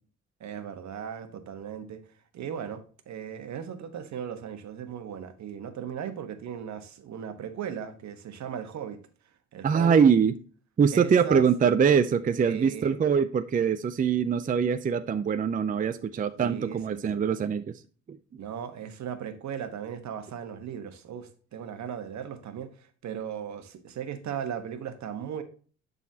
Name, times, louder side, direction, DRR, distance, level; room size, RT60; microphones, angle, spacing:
voice 1, 0.4-2.0 2.3-9.0 9.5-10.0 10.9-11.5 12.4-13.0 16.4-17.3 18.4-25.4, right 8 dB, 65° right, 1.2 m, -37 dB
voice 2, 9.6-10.3 10.8-17.6, right 6 dB, 30° right, 0.5 m, -23 dB
11.5 x 4.1 x 2.8 m
cardioid pair, 90°, 30 cm